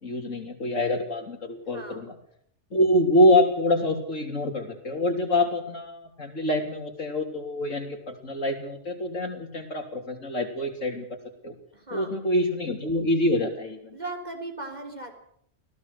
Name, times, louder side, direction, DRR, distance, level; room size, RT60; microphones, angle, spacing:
voice 1, 0.0-2.1 2.7-11.1 11.4-11.6 11.9-14.0, left 1 dB, 90° left, 3 dB, 3.7 m, -25 dB
voice 2, 1.7-2.1 11.7-12.2 13.9-15.1, right 2 dB, 35° right, 3 dB, 4.0 m, -37 dB
24.5 x 17.0 x 6.7 m, 0.68 s
omnidirectional pair, 1.3 m